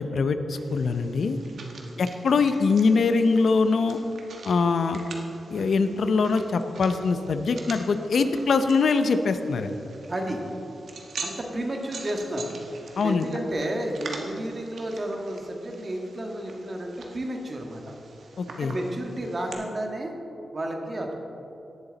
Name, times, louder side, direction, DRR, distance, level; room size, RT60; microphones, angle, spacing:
voice 1, 0.0-1.4 2.0-4.0 4.4-5.0 5.5-9.8 13.0-13.3 18.4-18.8, left 4 dB, 70° left, 9 dB, 0.6 m, -23 dB
sound 1, 0.5-19.5, right 3 dB, 75° right, 1.4 m, -44 dB
voice 2, 1.7-2.1 10.1-10.4 11.2-12.5 12.9-18.0 18.6-20.1 20.5-21.1, right 1 dB, 40° right, 1 dB, 1.7 m, -32 dB
18.0 x 7.1 x 4.0 m, 3.0 s
cardioid pair, 85°, 0 cm